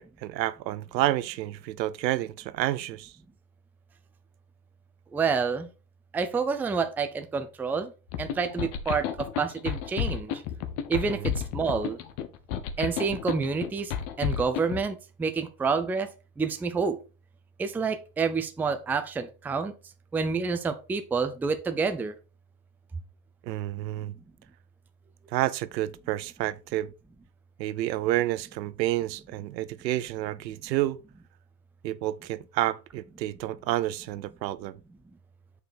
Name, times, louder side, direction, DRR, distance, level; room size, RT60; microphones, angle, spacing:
voice 1, 0.0-3.1 11.0-11.3 23.4-24.1 25.3-26.9 27.6-31.0 31.8-34.7, right 15 dB, 85° right, 0.7 m, -29 dB
voice 2, 5.1-5.7 6.1-7.9 8.2-10.4 10.9-12.0 12.8-16.1 16.4-17.0 17.6-19.7 20.1-22.1, right 5 dB, 5° right, 0.4 m, -28 dB
sound 1, 8.1-14.8, left 9 dB, 50° left, 1.2 m, -32 dB
6.8 x 4.8 x 4.3 m
supercardioid pair, 120°, 49 cm